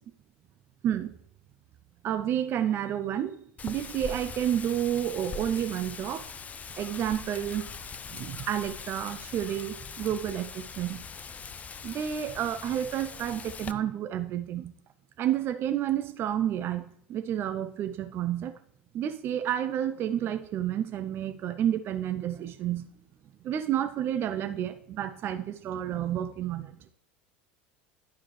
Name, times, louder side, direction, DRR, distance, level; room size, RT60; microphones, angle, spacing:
voice 1, 0.8-1.2 2.0-3.4 3.6-6.3 6.8-7.7 8.1-11.0 11.8-14.7 15.2-18.6 18.9-22.9 23.4-26.8, right 10 dB, 40° right, 10 dB, 0.5 m, -30 dB
Wind, 3.6-13.7, left 5 dB, 25° left, 0.4 m, -41 dB
11.5 x 4.8 x 3.0 m, 0.67 s
hypercardioid pair, 75°, 6 cm